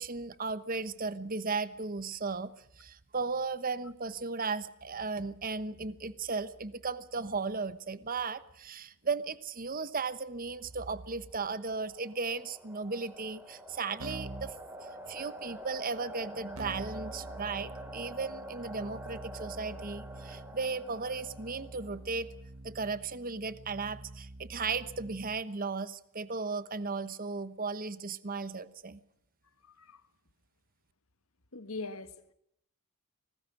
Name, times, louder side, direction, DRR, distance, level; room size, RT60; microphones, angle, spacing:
voice 1, 0.0-14.6 15.1-22.3 22.6-29.0, right 4 dB, 40° right, 1.1 m, -36 dB
sound 1, 11.3-22.1, right 1 dB, 10° right, 3.8 m, -46 dB
Keyboard (musical), 14.0-14.6 16.6-25.4, right 2 dB, 75° right, 1.4 m, -47 dB
voice 2, 31.5-32.3, left 3 dB, 70° left, 1.8 m, -41 dB
25.0 x 19.5 x 6.1 m
head